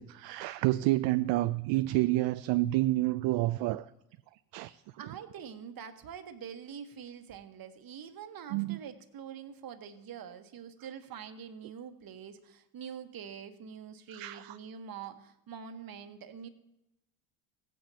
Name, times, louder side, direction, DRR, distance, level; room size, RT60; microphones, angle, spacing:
voice 1, 0.0-3.9 4.5-4.8 8.5-8.8 14.1-14.6, right 17 dB, 60° right, 0.5 m, -29 dB
voice 2, 5.0-16.5, right 7 dB, 45° right, 1.3 m, -45 dB
16.5 x 9.2 x 2.9 m
supercardioid pair, 80°, 50 cm